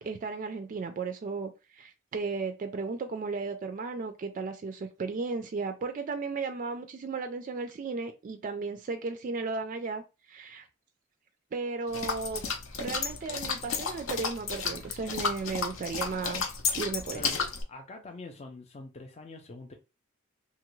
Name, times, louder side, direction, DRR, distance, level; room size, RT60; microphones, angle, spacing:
voice 1, 0.0-10.7 11.5-12.4 12.8-16.5 16.8-17.3, right 4 dB, 40° right, 0.3 m, -35 dB
sound 1, 11.9-17.6, left 5 dB, 70° left, 0.6 m, -32 dB
voice 2, 17.1-19.7, left 2 dB, 30° left, 0.4 m, -45 dB
2.9 x 2.4 x 3.0 m
head